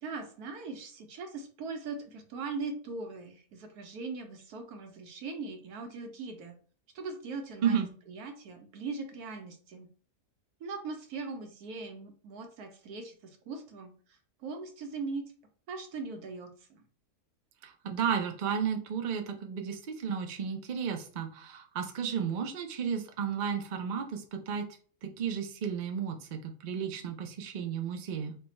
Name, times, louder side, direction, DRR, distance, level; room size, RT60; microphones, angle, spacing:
voice 1, 0.0-6.6 6.9-9.9 10.6-15.2 15.7-16.8, right 4 dB, 85° right, 5 dB, 1.2 m, -40 dB
voice 2, 17.6-24.6 25.0-28.4, right 7 dB, 65° right, 4 dB, 0.4 m, -33 dB
3.3 x 2.2 x 4.0 m, 0.43 s
omnidirectional pair, 1.6 m